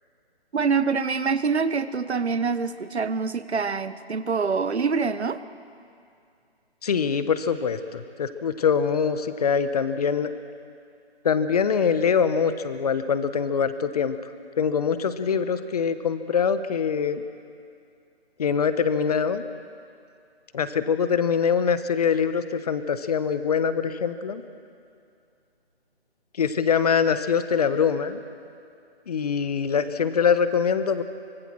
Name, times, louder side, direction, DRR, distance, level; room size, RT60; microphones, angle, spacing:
voice 1, 0.5-5.4, right 5 dB, 80° right, 13 dB, 1.2 m, -25 dB
voice 2, 6.8-10.3 11.2-14.2 14.6-17.2 18.4-19.4 20.5-24.4 26.4-28.2 29.1-31.0, left 6 dB, 35° left, 11 dB, 1.1 m, -23 dB
25.0 x 23.5 x 6.3 m, 2.5 s
figure-of-eight pair, 155°, 33 cm